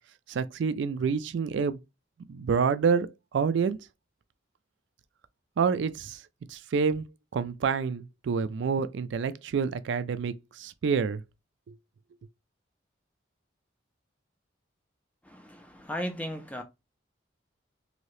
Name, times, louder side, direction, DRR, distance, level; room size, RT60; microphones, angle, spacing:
voice 1, 0.3-1.8 2.3-3.8 5.6-6.2 6.5-7.0 7.3-11.2, right 5 dB, 70° right, 0.3 m, -28 dB
voice 2, 15.2-16.6, equal, 5° left, 0.4 m, -36 dB
2.8 x 2.7 x 3.1 m
head